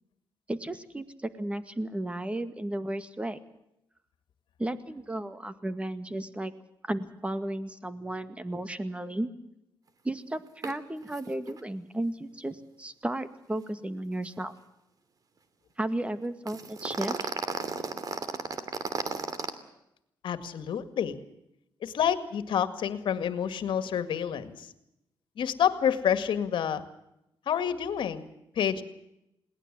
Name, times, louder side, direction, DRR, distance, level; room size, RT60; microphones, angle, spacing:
voice 1, 0.5-3.4 4.6-6.5 6.8-9.3 10.0-14.5 15.8-17.2, right 1 dB, 15° right, 11 dB, 2.0 m, -34 dB
sound 1, 10.6-10.7 11.0-11.2 11.5-11.6 16.5-19.5, right 4 dB, 50° right, 2.6 m, -33 dB
voice 2, 20.2-21.2 21.8-24.7 25.4-26.8 27.5-28.3 28.6-28.8, left 8 dB, 75° left, 11 dB, 2.0 m, -28 dB
22.0 x 18.5 x 7.6 m, 0.84 s
cardioid pair, 95°, 8 cm